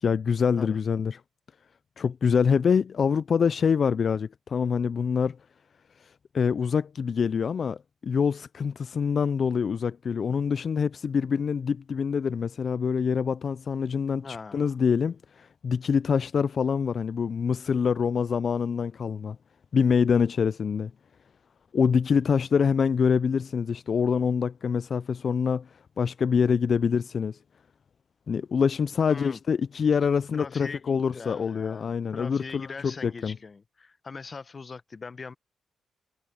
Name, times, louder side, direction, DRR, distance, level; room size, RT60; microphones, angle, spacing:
voice 1, 0.0-1.2 2.0-5.4 6.0-19.4 19.7-20.9 21.7-27.4 28.3-33.4, left 6 dB, 55° left, 0.3 m, -25 dB
voice 2, 14.2-14.8 29.1-29.4 30.3-35.3, left 4 dB, 40° left, 1.0 m, -41 dB
cardioid pair, 80°, 0 cm